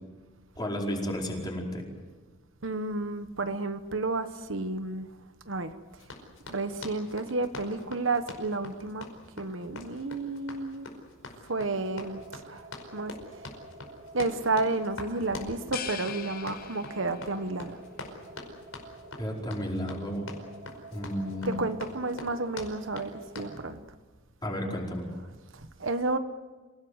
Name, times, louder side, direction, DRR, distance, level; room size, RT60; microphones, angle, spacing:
voice 1, 0.6-1.9 19.2-20.3 20.9-21.5 24.4-25.1, equal, 20° left, 4.8 m, -32 dB
voice 2, 2.6-5.1 5.5-5.7 6.5-9.1 9.4-10.9 11.4-12.7 12.9-13.1 14.1-17.8 21.4-23.8 25.5-26.2, right 3 dB, 65° right, 1.2 m, -31 dB
Run, 6.0-23.6, left 2 dB, 75° left, 5.2 m, -44 dB
sound 1, 11.6-23.8, right 1 dB, 40° right, 3.1 m, -49 dB
sound 2, 15.7-17.4, left 9 dB, 45° left, 0.8 m, -40 dB
27.5 x 18.0 x 8.0 m
head